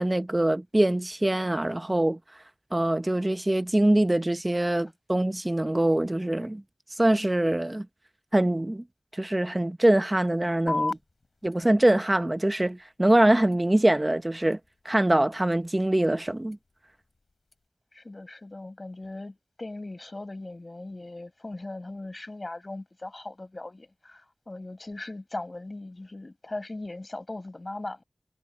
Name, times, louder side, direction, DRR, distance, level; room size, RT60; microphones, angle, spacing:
voice 1, 0.0-2.2 2.7-6.6 6.9-7.9 8.3-8.8 9.1-11.0 11.4-14.6 14.8-16.6, right 1 dB, 25° right, 0.7 m, -23 dB
sound 1, 10.7-17.7, left 3 dB, 70° left, 3.5 m, -40 dB
voice 2, 17.9-28.0, left 2 dB, 45° left, 7.4 m, -39 dB
wide cardioid pair, 45°, 0 cm